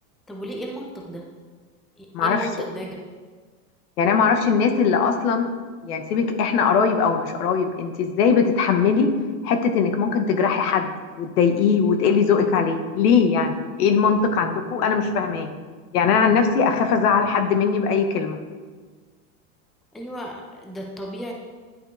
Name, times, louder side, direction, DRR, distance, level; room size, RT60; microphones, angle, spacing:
voice 1, 0.3-1.2 2.0-3.0 19.9-21.3, equal, ahead, 0 dB, 0.4 m, -34 dB
voice 2, 2.1-2.5 4.0-5.5 5.8-9.1 9.4-10.9 11.2-15.5 15.9-18.4, left 6 dB, 80° left, 6 dB, 1.0 m, -20 dB
10.5 x 5.2 x 2.5 m, 1.5 s
hypercardioid pair, 120°, 45 cm